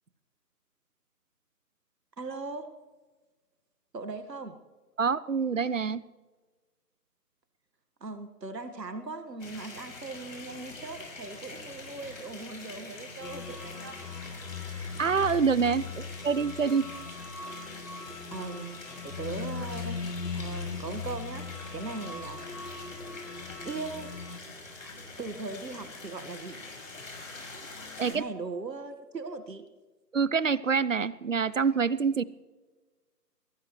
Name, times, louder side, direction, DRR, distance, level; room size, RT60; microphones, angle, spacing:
voice 1, 2.2-2.8 3.9-4.6 8.0-14.1 15.9-16.0 18.3-22.4 23.2-23.3 23.6-24.2 24.8-26.6 28.1-29.7, right 3 dB, 85° right, 9 dB, 1.8 m, -39 dB
voice 2, 5.0-6.0 15.0-16.9 28.0-28.2 30.1-32.2, right 5 dB, 50° right, 19 dB, 0.6 m, -26 dB
sound 1, 9.4-28.1, left 3 dB, 50° left, 5.8 m, -45 dB
sound 2, 13.2-24.4, left 5 dB, 75° left, 2.1 m, -39 dB
22.0 x 19.0 x 3.2 m, 1.3 s
figure-of-eight pair, 160°, 48 cm